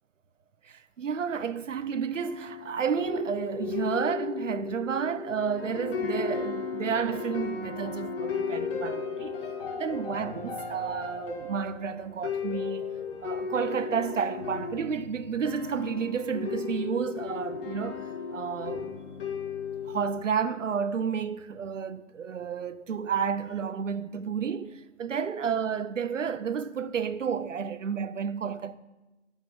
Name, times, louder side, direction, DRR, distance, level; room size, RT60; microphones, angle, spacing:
voice 1, 0.6-9.4 9.7-12.9 13.2-18.9 19.8-28.8, right 7 dB, 85° right, 0.7 m, -31 dB
sound 1, 2.2-20.2, left 5 dB, 50° left, 1.8 m, -35 dB
11.0 x 5.5 x 6.3 m
figure-of-eight pair, 140°, 37 cm